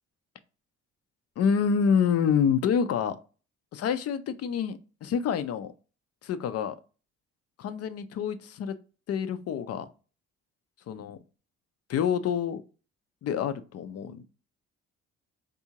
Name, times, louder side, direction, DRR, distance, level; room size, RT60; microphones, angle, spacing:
voice 1, 1.4-3.2 3.7-5.7 6.2-6.8 7.6-8.7 9.1-9.9 10.9-11.2 11.9-12.6 13.2-14.2, left 7 dB, 55° left, 12 dB, 0.4 m, -27 dB
3.6 x 2.7 x 2.8 m, 0.36 s
cardioid pair, 90°, 30 cm